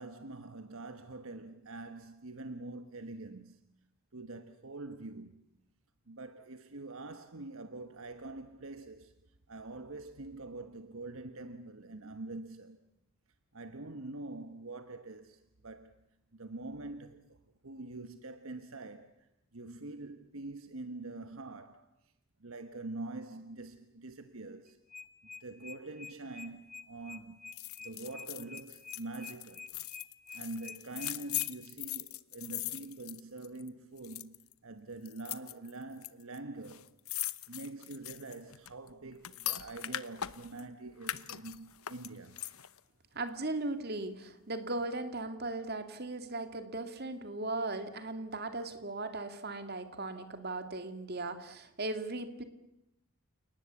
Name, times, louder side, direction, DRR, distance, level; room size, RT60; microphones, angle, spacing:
voice 1, 0.0-3.6 4.1-5.4 6.1-9.1 9.5-12.8 13.5-15.9 16.3-21.9 22.4-24.8 25.4-27.4 27.8-29.7 30.3-34.3 34.6-36.9 37.5-42.4, right 2 dB, 70° right, 1.2 m, -45 dB
sound 1, 24.7-31.5, left 5 dB, 35° left, 1.1 m, -48 dB
sound 2, 27.5-33.7 34.0-34.5 35.1-36.1 36.3-36.4 36.6-40.6 41.0-42.8 43.2-43.3, left 14 dB, 75° left, 0.9 m, -40 dB
voice 2, 43.2-52.4, right 2 dB, 45° right, 2.3 m, -38 dB
29.0 x 19.0 x 8.3 m
head